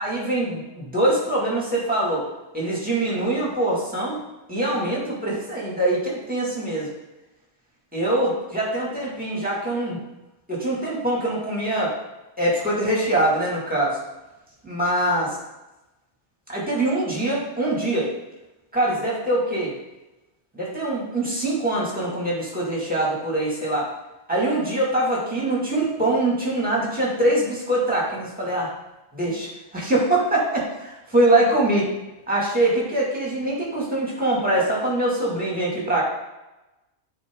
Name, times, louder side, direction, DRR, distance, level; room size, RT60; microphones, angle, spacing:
voice 1, 0.0-2.3 2.5-4.2 4.5-6.9 7.9-10.0 10.5-11.9 12.4-14.0 14.6-15.3 16.5-18.1 18.7-19.8 20.5-23.9 24.3-28.7 29.1-31.9 32.3-36.0, right 1 dB, 5° right, -4 dB, 2.3 m, -23 dB
9.6 x 4.7 x 3.8 m, 1.0 s
omnidirectional pair, 1.2 m